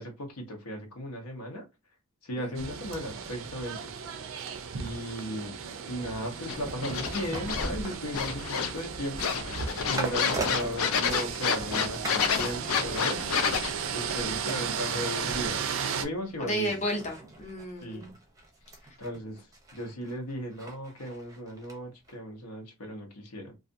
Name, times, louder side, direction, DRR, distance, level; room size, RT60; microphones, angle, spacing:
voice 1, 0.0-1.7 2.2-4.2 4.7-5.6 5.9-9.2 9.5-12.1 12.3-13.2 13.9-15.6 16.0-16.8 17.8-18.1 19.0-23.5, equal, 90° left, 0.9 m, -36 dB
voice 2, 2.4-2.7 16.4-18.1, equal, 30° left, 0.7 m, -33 dB
sound 1, 2.5-16.0, right 6 dB, 65° right, 0.4 m, -35 dB
sound 2, 6.5-7.7 8.1-8.9 9.2-13.7, left 6 dB, 75° left, 0.4 m, -29 dB
sound 3, 6.5-11.7 12.0-12.3 12.6-21.8 22.1-22.2, right 2 dB, 15° right, 0.5 m, -41 dB
2.4 x 2.4 x 2.5 m
head